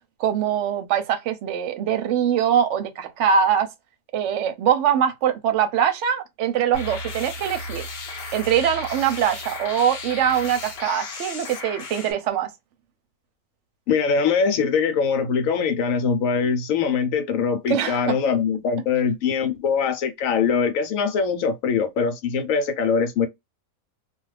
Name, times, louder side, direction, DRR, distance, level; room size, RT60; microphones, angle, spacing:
voice 1, 0.2-3.7 4.1-7.8 8.3-12.5 17.7-18.2, right 8 dB, 65° right, 0.8 m, -22 dB
sound 1, 6.7-12.1, left 2 dB, 50° left, 0.8 m, -34 dB
voice 2, 13.9-23.3, left 6 dB, 70° left, 1.0 m, -22 dB
2.4 x 2.3 x 3.2 m
omnidirectional pair, 1.5 m